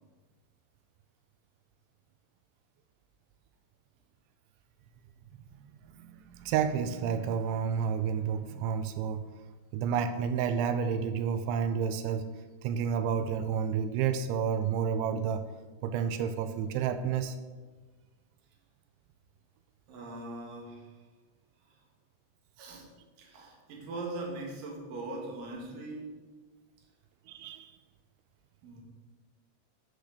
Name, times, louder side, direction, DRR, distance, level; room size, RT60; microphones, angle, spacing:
voice 1, 5.6-9.2 9.7-12.3 12.6-15.4 15.8-17.4 27.3-27.8, right 7 dB, 85° right, 9 dB, 2.8 m, -30 dB
voice 2, 19.9-21.1 21.6-21.8 22.6-22.9 23.2-26.2 28.6-28.8, right 2 dB, 55° right, -1 dB, 2.7 m, -41 dB
10.0 x 5.0 x 6.4 m, 1.3 s
omnidirectional pair, 5.6 m